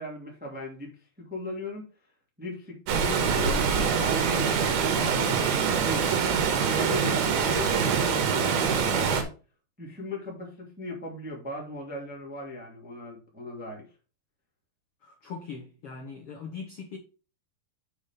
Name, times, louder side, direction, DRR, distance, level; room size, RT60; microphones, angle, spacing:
voice 1, 0.0-1.9 2.4-3.6 3.9-6.1 6.6-9.3 9.8-13.8, left 1 dB, 5° right, 1.2 m, -38 dB
Water, 2.9-9.2, right 6 dB, 80° right, 3.4 m, -24 dB
voice 2, 15.0-17.0, left 5 dB, 80° left, 1.3 m, -40 dB
7.2 x 4.9 x 5.6 m
omnidirectional pair, 4.5 m